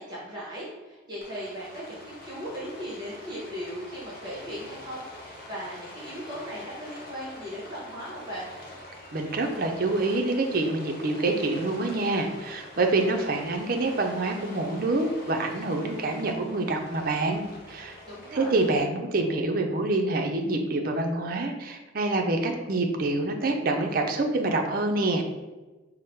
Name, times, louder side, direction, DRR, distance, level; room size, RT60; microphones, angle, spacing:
voice 1, 0.0-8.5 18.0-18.6, equal, 20° right, -7 dB, 1.0 m, -38 dB
Rain, 1.2-18.8, left 1 dB, 50° left, 1.0 m, -45 dB
voice 2, 9.1-18.0 18.3-25.2, right 2 dB, 50° right, 3 dB, 0.5 m, -26 dB
4.7 x 2.1 x 4.4 m, 1.2 s
head